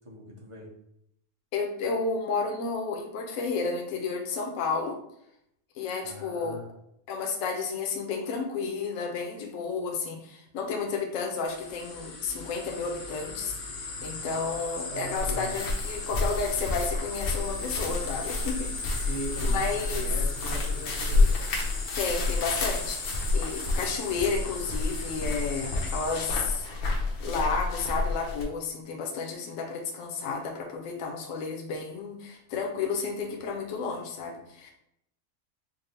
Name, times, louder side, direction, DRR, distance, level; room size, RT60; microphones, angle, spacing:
voice 1, 0.0-0.7 6.0-6.6 14.9-15.5 19.0-21.4, equal, 30° right, -3 dB, 0.6 m, -39 dB
voice 2, 1.5-5.0 5.7-6.6 7.1-19.1 19.4-20.1 22.0-26.7 27.2-34.7, left 4 dB, 70° left, 2 dB, 1.0 m, -32 dB
sound 1, 11.5-26.3, left 3 dB, 50° left, 0.6 m, -38 dB
sound 2, 15.2-28.4, left 3 dB, 85° left, 1.3 m, -30 dB
5.2 x 2.1 x 3.2 m, 0.75 s
omnidirectional pair, 1.5 m